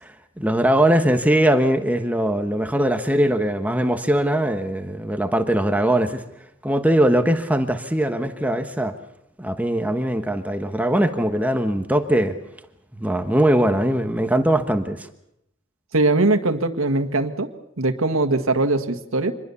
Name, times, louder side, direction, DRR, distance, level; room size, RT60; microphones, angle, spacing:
voice 1, 0.0-6.2 6.6-8.9 9.4-12.3 13.0-15.1, right 1 dB, 5° right, 7 dB, 1.2 m, -21 dB
voice 2, 15.9-17.5 17.8-19.3, right 2 dB, 85° right, 7 dB, 1.7 m, -21 dB
26.0 x 21.0 x 7.1 m, 0.79 s
head